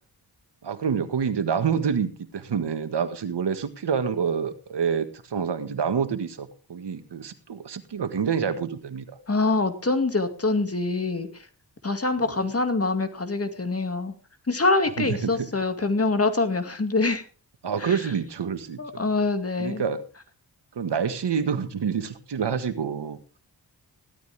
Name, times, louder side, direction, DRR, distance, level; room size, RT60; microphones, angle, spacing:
voice 1, 0.6-9.2 12.2-12.3 15.0-15.5 17.6-19.1 19.6-20.0 20.7-23.2, right 6 dB, 80° right, 9 dB, 1.7 m, -27 dB
voice 2, 9.3-11.3 11.8-14.1 14.5-17.2 17.8-18.0 18.8-19.8, left 3 dB, 35° left, 8 dB, 2.3 m, -25 dB
16.0 x 12.5 x 3.5 m, 0.34 s
wide cardioid pair, 75°, 41 cm